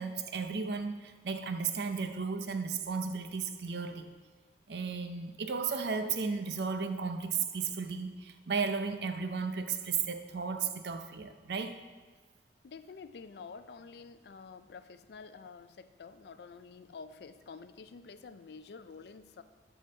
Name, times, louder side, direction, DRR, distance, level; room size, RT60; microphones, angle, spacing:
voice 1, 0.0-4.1 4.7-11.7, right 5 dB, 70° right, 8 dB, 0.6 m, -34 dB
voice 2, 12.6-19.4, left 5 dB, 65° left, 11 dB, 0.4 m, -49 dB
7.6 x 3.9 x 6.7 m, 1.4 s
head